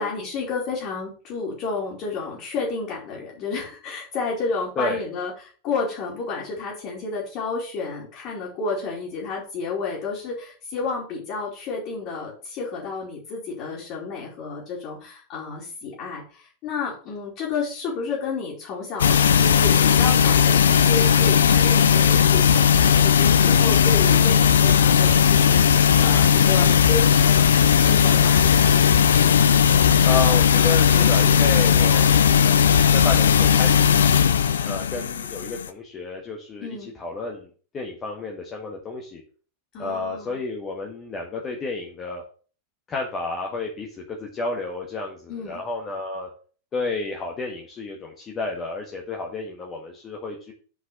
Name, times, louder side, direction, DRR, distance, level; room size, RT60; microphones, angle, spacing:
voice 1, 0.0-28.7 36.6-36.9 39.7-40.4 45.3-45.6, left 4 dB, 40° left, -5 dB, 3.3 m, -31 dB
sound 1, 19.0-35.7, left 7 dB, 65° left, 0.6 m, -17 dB
voice 2, 30.0-32.1 32.4-34.0 34.6-37.5 37.7-39.2 39.8-42.2 42.9-46.3 46.7-50.5, left 3 dB, 25° left, 0 dB, 1.6 m, -31 dB
6.1 x 5.3 x 6.9 m, 0.41 s
figure-of-eight pair, 90°, 0 cm